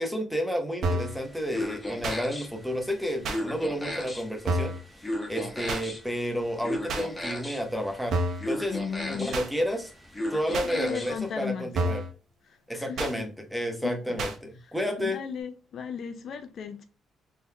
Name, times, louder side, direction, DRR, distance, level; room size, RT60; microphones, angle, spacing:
voice 1, 0.0-8.2 8.5-8.8 9.1-9.9 10.3-12.0 12.7-15.2, equal, ahead, 1.2 m, -31 dB
sound 1, 0.8-1.2 2.0-2.2 3.2-3.4 4.5-4.8 5.7-5.8 6.9-7.1 8.1-8.5 9.3-9.5 10.5-10.7 11.7-12.1 13.0-13.1 14.2-14.4, right 1 dB, 70° right, 0.8 m, -28 dB
sound 2, 1.1-11.3, left 1 dB, 15° left, 1.0 m, -36 dB
voice 2, 8.7-9.4 10.2-11.7 12.5-13.0 14.1-14.2 14.6-16.9, left 7 dB, 65° left, 0.5 m, -36 dB
3.9 x 3.4 x 2.4 m
cardioid pair, 90°, 0 cm